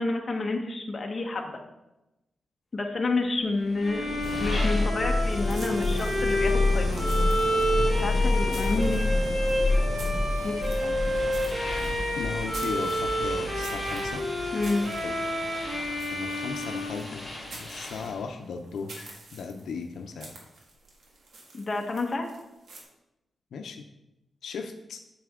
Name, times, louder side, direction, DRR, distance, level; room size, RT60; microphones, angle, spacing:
voice 1, 0.0-1.6 2.7-7.1 7.9-9.5 10.4-11.1 11.4-11.6 11.9-12.0 14.5-14.9 21.5-22.3, left 3 dB, 30° left, 1 dB, 1.2 m, -30 dB
sound 1, 3.6-18.2, left 2 dB, 5° left, 2.4 m, -29 dB
Bowed string instrument, 3.8-17.7, equal, 50° right, 2.7 m, -30 dB
sound 2, 5.2-22.8, right 2 dB, 70° right, 1.9 m, -49 dB
voice 2, 12.2-14.2 15.0-15.1 16.1-20.3 23.5-23.8 24.4-25.0, left 5 dB, 85° left, 5 dB, 0.6 m, -36 dB
9.3 x 6.7 x 3.7 m, 0.94 s
wide cardioid pair, 165°, 0 cm